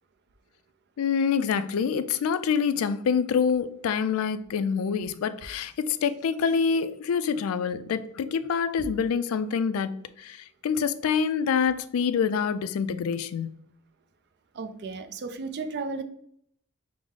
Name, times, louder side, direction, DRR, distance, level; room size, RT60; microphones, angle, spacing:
voice 1, 1.0-9.9 10.2-13.7, left 6 dB, 75° left, 0.3 m, -26 dB
voice 2, 14.5-16.0, right 4 dB, 50° right, 0.4 m, -34 dB
4.9 x 2.1 x 3.6 m
head